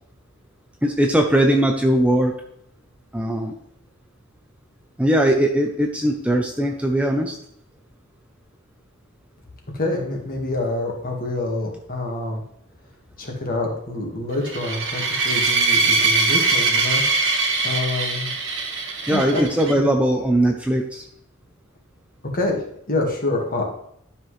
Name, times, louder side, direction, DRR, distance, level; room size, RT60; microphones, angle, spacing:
voice 1, 0.8-2.3 3.1-3.5 5.0-7.4 19.1-21.0, right 1 dB, 5° right, 2 dB, 0.6 m, -20 dB
voice 2, 9.7-12.4 13.2-17.0 17.6-18.3 19.1-19.5 22.3-22.6 22.9-23.7, left 2 dB, 40° left, 0 dB, 1.8 m, -26 dB
sound 1, 14.4-19.7, right 3 dB, 55° right, 1.6 m, -22 dB
12.0 x 5.9 x 3.3 m, 0.73 s
head